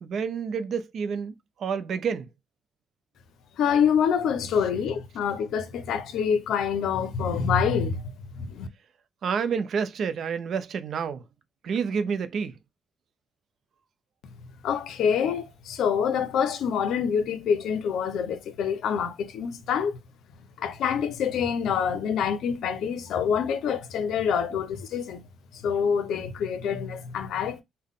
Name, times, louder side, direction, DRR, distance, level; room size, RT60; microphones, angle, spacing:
voice 1, 0.0-1.3 1.6-2.3 9.2-11.2 11.6-12.6, right 6 dB, 60° right, 0.5 m, -29 dB
voice 2, 3.6-8.7 14.6-20.0 20.6-25.2 25.5-27.6, left 7 dB, 80° left, 0.5 m, -26 dB
3.7 x 2.1 x 3.6 m
cardioid pair, 90°, 0 cm